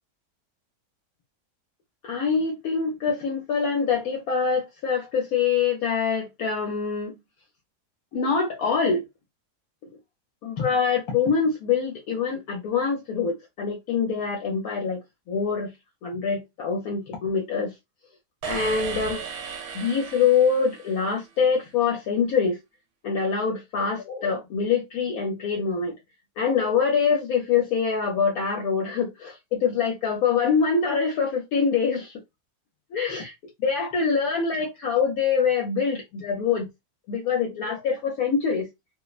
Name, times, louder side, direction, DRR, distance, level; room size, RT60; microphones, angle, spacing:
voice 1, 2.0-7.1 8.1-9.0 10.4-15.0 15.3-15.7 16.0-17.7 18.4-19.2 19.7-22.6 23.0-25.9 26.4-32.1 32.9-33.3 33.6-36.7 37.1-38.7, left 6 dB, 70° left, 1.0 m, -24 dB
sound 1, 18.4-21.3, right 6 dB, 80° right, 1.1 m, -35 dB
2.8 x 2.0 x 2.3 m
omnidirectional pair, 1.7 m